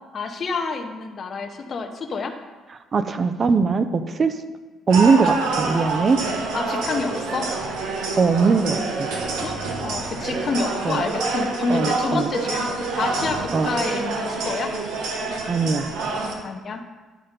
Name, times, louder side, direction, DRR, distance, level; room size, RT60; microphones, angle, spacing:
voice 1, 0.0-2.3 6.5-7.5 9.4-13.4 13.6-14.7 16.4-16.8, left 4 dB, 40° left, 4 dB, 0.8 m, -28 dB
voice 2, 2.9-4.4 4.9-6.2 8.2-9.1 10.8-11.0 11.7-12.3 13.5-13.7 15.5-15.9, right 4 dB, 35° right, 10 dB, 0.5 m, -20 dB
sound 1, 4.9-16.3, right 3 dB, 85° right, 1.2 m, -27 dB
11.0 x 4.2 x 5.1 m, 1.3 s
cardioid pair, 115°, 0 cm